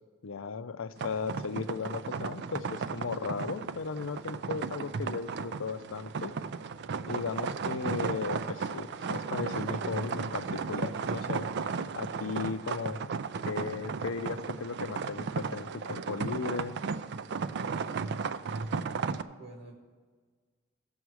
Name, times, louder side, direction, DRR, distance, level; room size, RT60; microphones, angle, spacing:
voice 1, 0.2-6.4 7.1-11.5 12.0-13.0 13.5-16.8, left 5 dB, 85° left, 12 dB, 0.5 m, -36 dB
sound 1, 1.0-19.2, right 5 dB, 60° right, 0.4 m, -35 dB
voice 2, 18.9-19.7, right 1 dB, 80° right, 1 dB, 1.8 m, -49 dB
16.0 x 7.1 x 4.8 m, 1.5 s
head